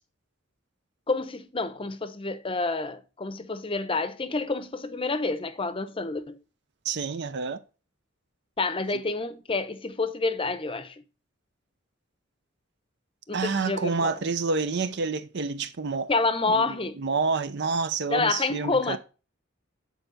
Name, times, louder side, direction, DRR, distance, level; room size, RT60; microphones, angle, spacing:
voice 1, 1.1-6.4 8.6-11.0 13.3-14.2 16.1-17.0 18.1-19.0, left 3 dB, 25° left, 0.7 m, -28 dB
voice 2, 6.8-7.6 13.3-16.1 16.5-19.0, right 4 dB, 55° right, 0.6 m, -28 dB
9.2 x 4.5 x 3.9 m
head